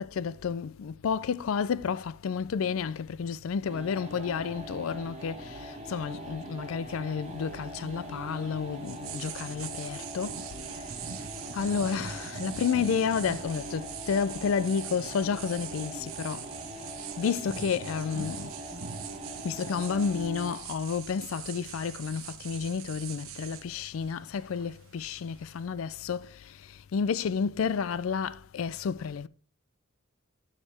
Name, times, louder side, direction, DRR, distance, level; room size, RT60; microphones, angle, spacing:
voice 1, 0.0-11.2 11.5-18.5 19.4-29.3, left 6 dB, 80° left, 0.4 m, -31 dB
sound 1, 3.7-20.7, right 1 dB, 30° right, 1.4 m, -42 dB
sound 2, 7.2-25.7, right 8 dB, 90° right, 1.0 m, -43 dB
9.9 x 6.5 x 3.3 m
head